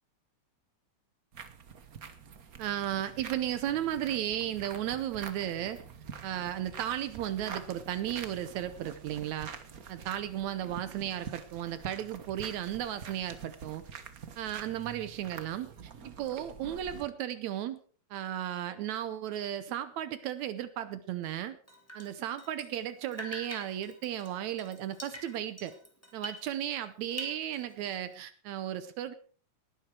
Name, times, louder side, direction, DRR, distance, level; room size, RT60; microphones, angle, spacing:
sound 1, 1.3-17.0, right 6 dB, 55° right, 1.0 m, -46 dB
voice 1, 2.6-5.8 6.2-9.5 9.9-13.8 14.4-17.8 18.1-21.6 21.9-25.7 26.1-29.1, right 11 dB, 75° right, 13 dB, 2.1 m, -35 dB
Drip, 21.7-22.9 23.1-26.8 27.1-28.1, equal, 5° left, 2.3 m, -45 dB
19.0 x 10.5 x 4.7 m, 0.42 s
omnidirectional pair, 3.4 m